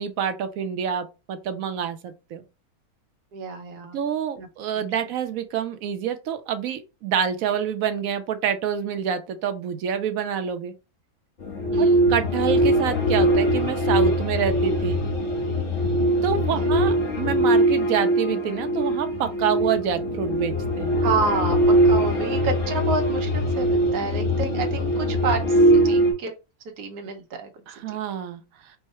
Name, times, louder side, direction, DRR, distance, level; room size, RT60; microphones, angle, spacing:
voice 1, 0.0-2.4 3.9-10.7 11.8-15.0 16.2-20.9 27.7-28.7, right 8 dB, 70° right, 1.0 m, -27 dB
voice 2, 3.3-4.0 4.4-4.5 4.8-4.9 11.7-12.2 16.5-16.7 21.0-26.3 26.8-27.6 27.9-28.0, right 4 dB, 90° right, 1.3 m, -29 dB
sound 1, 11.4-26.1, right 1 dB, 40° left, 1.2 m, -21 dB
4.6 x 2.1 x 4.2 m
omnidirectional pair, 1.6 m